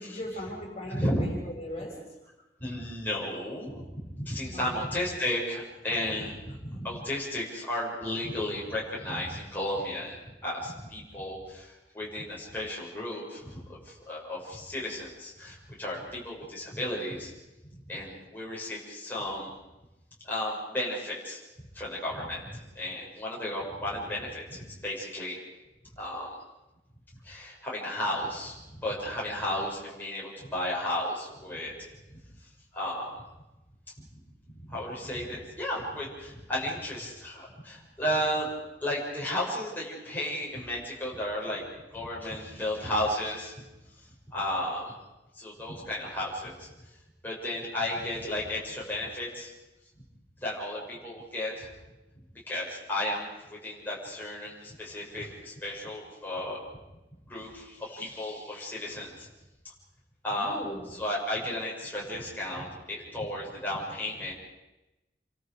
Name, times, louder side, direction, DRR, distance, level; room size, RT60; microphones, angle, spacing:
voice 1, 0.0-2.0 4.5-5.0 60.3-60.8, left 1 dB, 35° left, -1 dB, 6.1 m, -39 dB
voice 2, 0.9-1.3 1.8-1.9 2.6-17.3 17.9-19.5 20.2-21.4 21.7-25.4 26.0-26.3 27.2-31.7 32.1-32.2 32.7-33.1 34.0-34.1 34.6-38.5 38.8-41.6 41.9-43.5 44.3-44.9 45.3-46.7 47.2-49.5 50.4-51.7 52.5-56.6 57.2-59.3 60.2-60.6 60.9-64.3, left 1 dB, 10° left, -5 dB, 6.4 m, -34 dB
29.0 x 24.0 x 5.1 m, 1.0 s
head